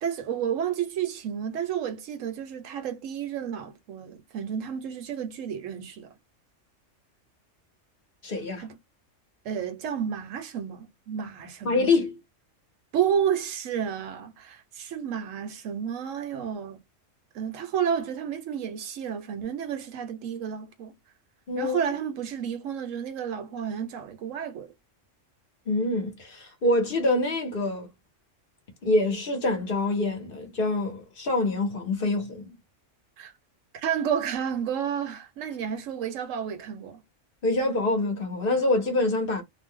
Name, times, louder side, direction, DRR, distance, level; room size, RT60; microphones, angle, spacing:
voice 1, 0.0-6.2 8.6-8.8 9.4-11.9 12.9-16.8 17.3-20.9 21.6-24.7 33.2-33.3 33.7-37.0, right 8 dB, 80° right, 1.1 m, -31 dB
voice 2, 8.2-8.6 11.6-12.1 21.5-21.8 25.7-27.9 28.8-32.6 37.4-39.4, left 2 dB, 50° left, 1.0 m, -25 dB
2.6 x 2.1 x 3.5 m
omnidirectional pair, 1.3 m